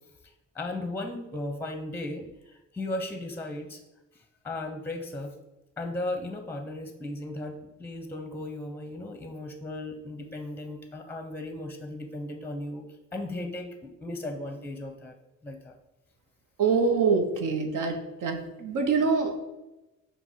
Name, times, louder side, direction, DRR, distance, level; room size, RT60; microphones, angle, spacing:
voice 1, 0.5-3.8 4.4-5.3 5.8-12.9 13.1-15.2 15.4-15.7, left 2 dB, 5° left, 5 dB, 0.6 m, -36 dB
voice 2, 16.6-19.4, right 5 dB, 75° right, 5 dB, 0.8 m, -25 dB
5.2 x 2.2 x 4.5 m, 0.99 s
cardioid pair, 70°, 31 cm